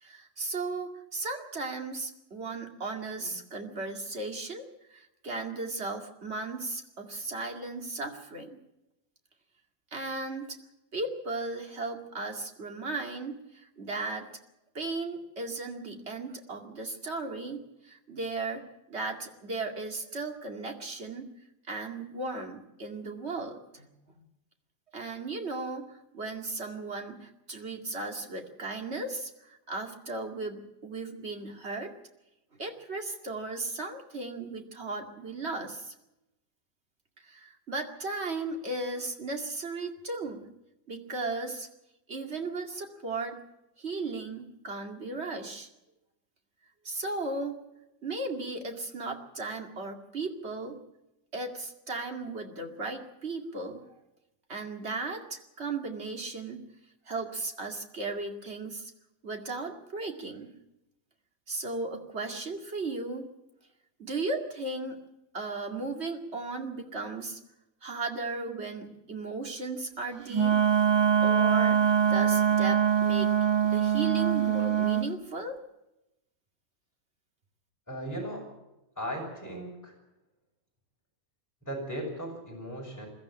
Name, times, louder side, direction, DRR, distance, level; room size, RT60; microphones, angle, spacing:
voice 1, 0.0-8.6 9.9-10.6 10.9-14.4 14.7-21.3 21.7-23.9 24.9-31.9 32.6-35.9 37.2-40.5 40.9-41.7 42.1-43.4 43.8-45.7 46.8-47.6 48.0-50.8 51.3-53.8 54.5-56.6 57.1-58.9 59.2-60.5 61.5-63.3 64.0-65.0 65.3-67.4 67.8-70.6 71.2-73.3 73.6-75.6, right 3 dB, 50° right, 3 dB, 2.5 m, -36 dB
Wind instrument woodwind instrument, 70.3-75.1, right 8 dB, 25° right, 0.7 m, -23 dB
voice 2, 77.9-78.5 79.0-79.9 81.6-83.1, equal, 10° left, -1 dB, 6.3 m, -37 dB
22.0 x 14.0 x 8.7 m, 0.91 s
omnidirectional pair, 1.5 m